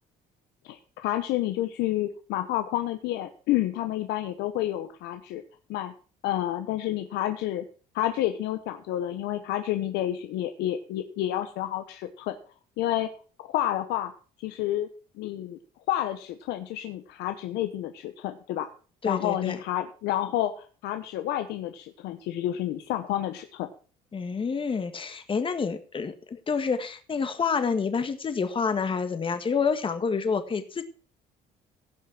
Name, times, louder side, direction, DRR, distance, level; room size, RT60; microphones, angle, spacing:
voice 1, 0.6-5.4 5.7-5.9 6.2-7.6 7.9-12.4 12.8-13.1 13.5-14.1 14.4-14.9 15.2-15.6 15.9-18.7 19.0-23.7, left 13 dB, 85° left, 1.1 m, -29 dB
voice 2, 19.0-19.6 24.1-30.8, left 5 dB, 30° left, 1.7 m, -28 dB
16.5 x 6.0 x 6.0 m
cardioid pair, 110°, 17 cm